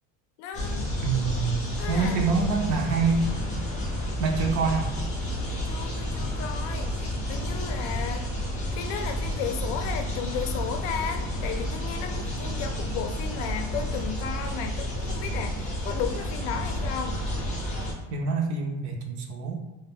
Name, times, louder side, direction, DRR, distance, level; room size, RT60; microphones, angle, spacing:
voice 1, 0.4-0.9 1.8-2.4 5.6-8.3 8.7-17.2, left 7 dB, 85° left, 6 dB, 0.5 m, -34 dB
sound 1, 0.5-17.9, equal, 20° left, 0.5 m, -30 dB
voice 2, 1.0-3.3 4.2-4.9 18.1-19.6, right 4 dB, 50° right, 3 dB, 0.5 m, -26 dB
2.1 x 2.1 x 3.5 m, 1.1 s
cardioid pair, 160°, 39 cm